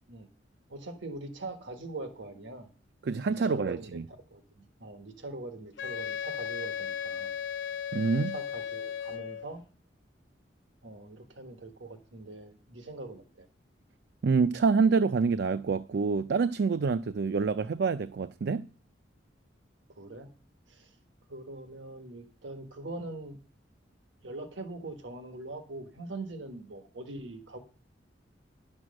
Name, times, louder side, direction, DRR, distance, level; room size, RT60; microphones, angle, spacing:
voice 1, 0.7-2.7 3.3-4.0 4.3-7.3 8.3-9.6 10.8-13.5 20.0-20.3 20.7-20.9 21.3-23.4 24.2-27.6, right 2 dB, 85° right, 1.3 m, -42 dB
voice 2, 3.0-4.0 7.9-8.3 14.2-18.7, right 4 dB, 60° right, 0.4 m, -27 dB
Wind instrument woodwind instrument, 5.8-9.5, left 8 dB, 85° left, 0.6 m, -36 dB
10.5 x 6.2 x 6.3 m
head